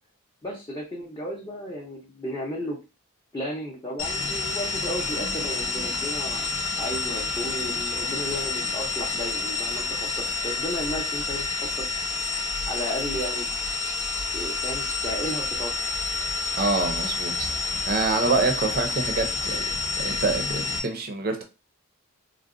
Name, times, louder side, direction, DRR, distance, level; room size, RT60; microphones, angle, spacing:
voice 1, 0.4-2.8 3.3-11.7 12.6-13.5 14.3-15.9 19.5-19.6, equal, 20° left, -4 dB, 0.5 m, -34 dB
sound 1, 4.0-20.8, left 3 dB, 55° left, 0.7 m, -29 dB
voice 2, 16.6-17.5 17.9-19.6 19.9-21.4, right 3 dB, 45° right, 5 dB, 0.5 m, -26 dB
3.8 x 2.0 x 2.5 m, 0.29 s
head